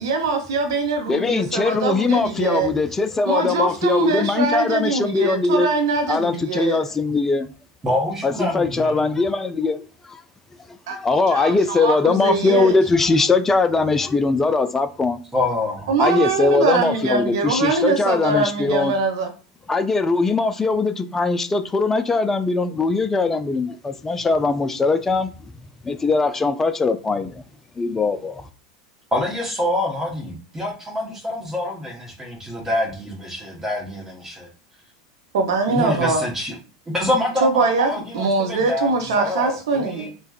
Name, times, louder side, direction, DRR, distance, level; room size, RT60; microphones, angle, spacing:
voice 1, 0.0-2.7 3.3-6.8 10.9-12.8 15.9-19.3 35.3-36.2 37.4-40.1, right 3 dB, 70° right, 0.7 m, -22 dB
voice 2, 1.1-5.7 6.1-7.5 8.2-9.8 10.1-10.2 10.9-15.2 16.0-18.9 19.7-25.3 25.8-27.4 27.8-28.5, left 3 dB, 15° left, 0.3 m, -21 dB
voice 3, 7.8-9.1 15.3-15.9 29.1-34.5 35.7-36.5 36.9-40.1, left 1 dB, 15° right, 0.9 m, -26 dB
3.3 x 2.1 x 2.3 m
hypercardioid pair, 85°, 2 cm